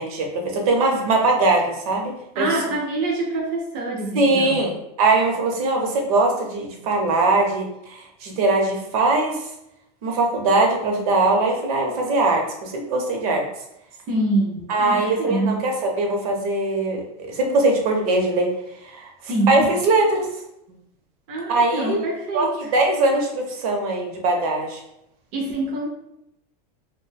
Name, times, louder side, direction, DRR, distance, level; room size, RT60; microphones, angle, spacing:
voice 1, 0.0-2.5 4.1-9.4 10.0-13.5 14.7-18.5 18.8-19.1 19.5-20.3 21.5-24.8, right 2 dB, 65° right, 2 dB, 0.7 m, -21 dB
voice 2, 2.3-4.7 14.1-15.6 19.2-19.6 21.3-22.7 25.3-25.9, right 2 dB, 30° right, -2 dB, 0.4 m, -25 dB
2.6 x 2.2 x 3.2 m, 0.81 s
supercardioid pair, 175°, 21 cm